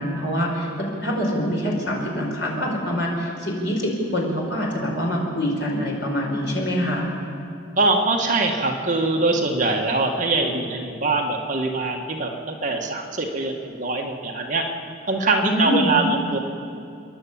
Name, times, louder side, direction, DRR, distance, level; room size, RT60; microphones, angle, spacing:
voice 1, 0.0-7.1 15.5-16.0, equal, 60° left, -1 dB, 4.9 m, -25 dB
voice 2, 7.8-14.6 15.1-16.4, right 3 dB, 40° right, 1 dB, 1.7 m, -23 dB
29.0 x 10.5 x 8.7 m, 2.4 s
head